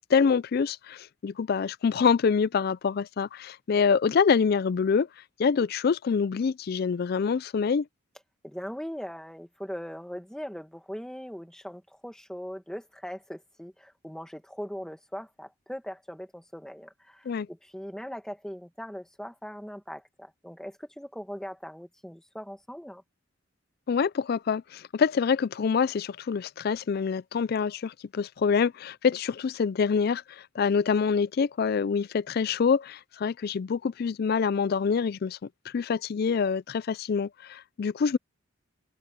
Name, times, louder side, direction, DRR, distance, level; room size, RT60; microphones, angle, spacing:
voice 1, 0.1-5.1 5.4-7.9 17.3-17.5 23.9-38.2, left 6 dB, 50° left, 0.3 m, -26 dB
voice 2, 8.4-23.0, equal, 5° left, 1.3 m, -40 dB
head